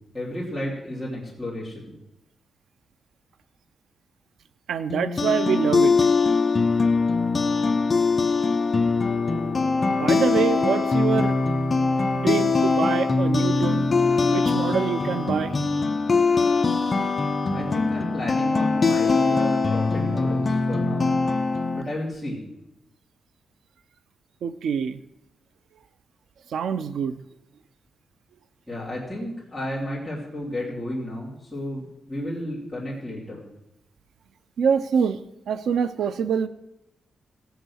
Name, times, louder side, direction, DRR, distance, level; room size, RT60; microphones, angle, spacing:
voice 1, 0.1-1.9 17.5-21.2 21.7-22.4 28.7-33.4, left 1 dB, 5° right, -6 dB, 3.1 m, -32 dB
voice 2, 4.7-5.9 10.0-11.4 12.1-13.9 14.3-15.5 24.4-25.0 26.5-27.2 34.6-35.2 35.5-36.5, right 7 dB, 90° right, 13 dB, 0.5 m, -25 dB
sound 1, 4.9-21.8, left 4 dB, 30° left, 0.8 m, -22 dB
17.5 x 7.9 x 6.3 m, 0.87 s
wide cardioid pair, 165°, 0 cm